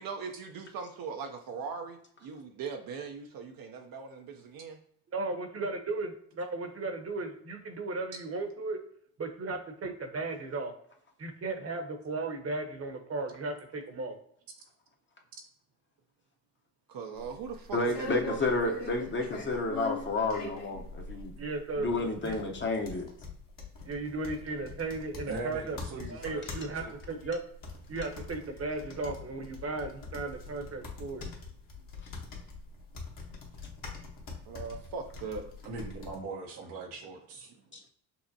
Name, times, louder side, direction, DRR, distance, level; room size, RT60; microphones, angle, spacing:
voice 1, 0.0-4.8 16.9-18.9 34.5-35.4, right 5 dB, 60° right, 4 dB, 0.6 m, -40 dB
voice 2, 5.1-8.8 9.2-10.7 11.2-14.2 21.4-21.9 22.2-22.4 23.8-25.8 26.1-27.4 27.9-31.3, right 3 dB, 35° right, 5 dB, 0.9 m, -35 dB
sound 1, 17.2-36.2, left 4 dB, 55° left, 1.3 m, -43 dB
voice 3, 17.7-21.4 21.8-23.0, left 2 dB, 30° left, 2 dB, 0.8 m, -30 dB
voice 4, 25.3-26.9 35.6-37.5, right 3 dB, 80° right, 1 dB, 1.0 m, -40 dB
5.5 x 2.1 x 2.7 m, 0.66 s
supercardioid pair, 65°, 40 cm